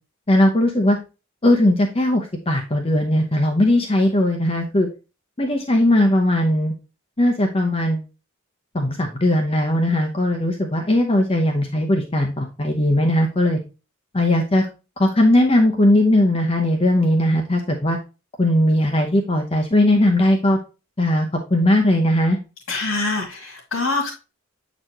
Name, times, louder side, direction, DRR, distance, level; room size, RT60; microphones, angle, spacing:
voice 1, 0.3-1.0 1.4-4.9 5.4-6.7 7.2-8.0 8.7-13.6 14.1-14.7 15.0-18.0 18.4-20.6 21.0-22.4, left 1 dB, 30° left, 3 dB, 0.7 m, -18 dB
voice 2, 22.7-24.1, left 3 dB, 85° left, -2 dB, 1.7 m, -24 dB
7.8 x 4.1 x 2.9 m, 0.30 s
head